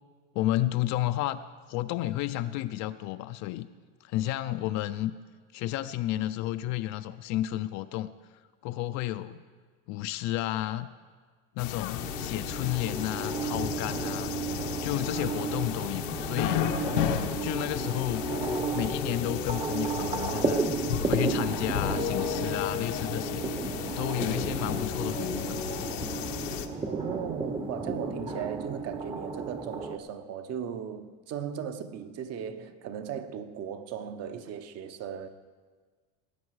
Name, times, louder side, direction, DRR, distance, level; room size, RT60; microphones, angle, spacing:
voice 1, 0.3-1.4 1.7-3.7 4.0-5.2 5.5-8.1 8.6-9.4 9.9-10.9 11.6-14.3 14.8-16.7 17.4-18.3 18.7-20.6 21.1-23.5 24.0-25.6, left 15 dB, 50° left, 0.5 m, -31 dB
sound 1, 11.6-26.7, left 10 dB, 85° left, 1.1 m, -34 dB
sound 2, 12.0-30.0, right 4 dB, 15° right, 0.8 m, -33 dB
sound 3, 12.8-28.5, left 8 dB, 25° left, 0.8 m, -40 dB
voice 2, 26.9-35.3, right 8 dB, 40° right, 1.0 m, -37 dB
19.0 x 8.8 x 4.8 m
supercardioid pair, 125°, 37 cm